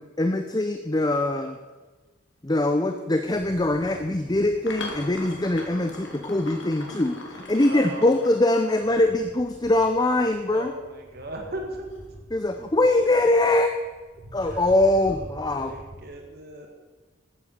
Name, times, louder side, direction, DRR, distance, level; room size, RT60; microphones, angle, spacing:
voice 1, 0.0-1.6 2.4-10.7 12.3-13.7 14.3-15.8, left 1 dB, 20° left, 7 dB, 0.6 m, -23 dB
sound 1, 3.3-16.1, equal, 85° right, 3.4 m, -47 dB
sound 2, 3.7-4.0 4.6-8.9 11.9-12.2, left 2 dB, 65° left, 2.3 m, -40 dB
voice 2, 7.7-8.1 10.5-11.9 14.5-14.6 15.0-15.3 15.5-16.7, right 1 dB, 55° right, 2 dB, 1.9 m, -37 dB
13.0 x 8.9 x 6.8 m, 1.3 s
head